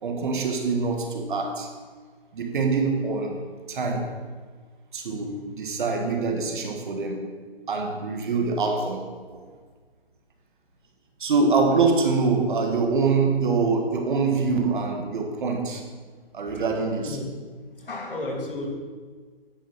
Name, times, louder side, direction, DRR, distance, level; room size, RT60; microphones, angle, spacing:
voice 1, 0.0-1.7 2.3-4.2 4.9-7.3 7.7-9.4 11.2-15.9 16.3-17.2, right 4 dB, 55° right, 3 dB, 1.6 m, -25 dB
voice 2, 17.8-18.7, left 2 dB, 65° left, -1 dB, 2.6 m, -32 dB
10.0 x 5.1 x 6.1 m, 1.5 s
figure-of-eight pair, 145°, 30 cm